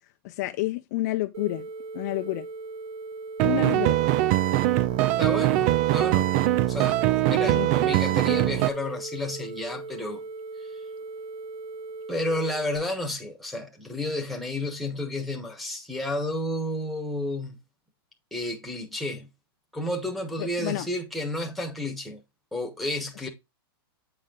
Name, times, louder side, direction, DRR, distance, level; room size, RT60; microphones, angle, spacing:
voice 1, 0.2-1.7 1.9-2.5 3.4-4.0 7.3-7.7 20.4-20.9, left 17 dB, 45° left, 0.5 m, -29 dB
sound 1, 1.3-12.8, right 3 dB, 85° right, 2.6 m, -39 dB
sound 2, 3.4-8.7, right 15 dB, 35° right, 0.4 m, -22 dB
voice 2, 5.2-6.3 6.7-10.2 10.6-10.8 12.1-17.6 18.3-19.3 19.7-22.2 22.5-23.3, left 1 dB, ahead, 1.2 m, -31 dB
8.8 x 4.4 x 3.8 m
supercardioid pair, 160°, 13 cm